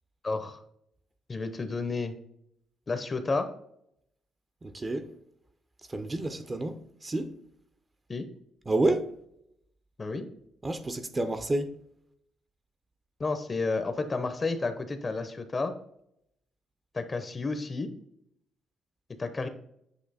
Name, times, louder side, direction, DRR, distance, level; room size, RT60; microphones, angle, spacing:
voice 1, 0.2-0.6 1.3-2.1 2.9-3.5 8.1-8.3 10.0-10.3 13.2-15.7 16.9-17.9 19.2-19.5, left 3 dB, 30° left, 0.8 m, -31 dB
voice 2, 4.6-5.1 5.9-7.3 8.7-9.1 10.6-11.7, right 2 dB, 25° right, 0.7 m, -29 dB
8.1 x 2.9 x 4.1 m
cardioid pair, 90°, 0 cm